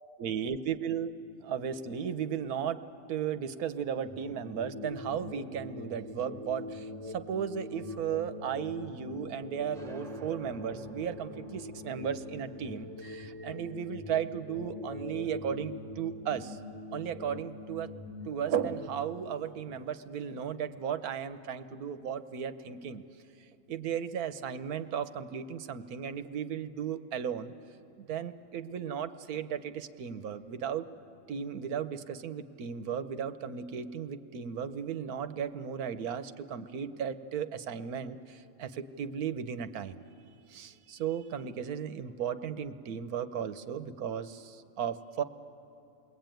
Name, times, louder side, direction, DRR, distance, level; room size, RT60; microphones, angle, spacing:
voice 1, 0.2-1.1 1.4-16.6 16.9-17.9 18.2-23.0 23.4-27.5 28.0-30.9 31.3-40.0 40.5-45.2, right 8 dB, 90° right, 11 dB, 1.4 m, -35 dB
sound 1, 4.0-18.9, left 2 dB, 15° left, 2.5 m, -43 dB
sound 2, 9.7-17.0, right 3 dB, 30° right, 3.2 m, -53 dB
29.0 x 21.0 x 9.1 m, 2.8 s
omnidirectional pair, 1.5 m